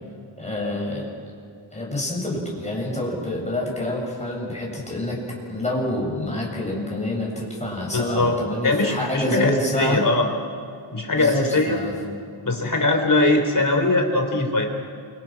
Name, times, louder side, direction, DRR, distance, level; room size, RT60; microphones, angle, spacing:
voice 1, 0.4-1.1 1.7-5.2 5.5-10.0 11.2-11.9, left 1 dB, 15° left, -3 dB, 7.7 m, -27 dB
voice 2, 7.9-8.3 8.6-10.3 10.9-11.8 12.4-14.7, left 2 dB, 40° left, 3 dB, 4.1 m, -21 dB
29.0 x 25.5 x 6.1 m, 2.4 s
wide cardioid pair, 120°, 49 cm